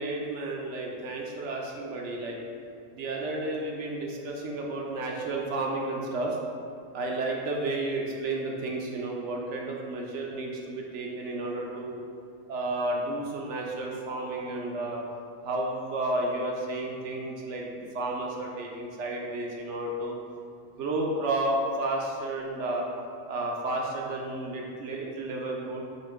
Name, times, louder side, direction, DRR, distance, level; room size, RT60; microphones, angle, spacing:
voice 1, 0.0-2.4 2.9-6.4 6.9-12.0 12.5-15.0 15.4-20.2 20.8-22.9 23.3-25.8, right 2 dB, 65° right, -1 dB, 0.8 m, -32 dB
5.7 x 2.6 x 3.5 m, 2.4 s
omnidirectional pair, 1.5 m